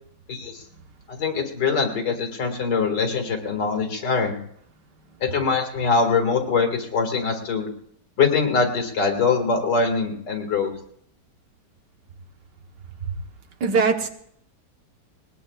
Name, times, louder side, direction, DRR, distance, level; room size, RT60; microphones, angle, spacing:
voice 1, 0.3-0.6 1.1-4.4 5.2-7.7 8.2-10.7, left 5 dB, 75° left, 3 dB, 2.7 m, -23 dB
voice 2, 13.6-14.1, right 5 dB, 75° right, 5 dB, 1.8 m, -21 dB
20.0 x 20.0 x 2.4 m, 0.68 s
omnidirectional pair, 1.9 m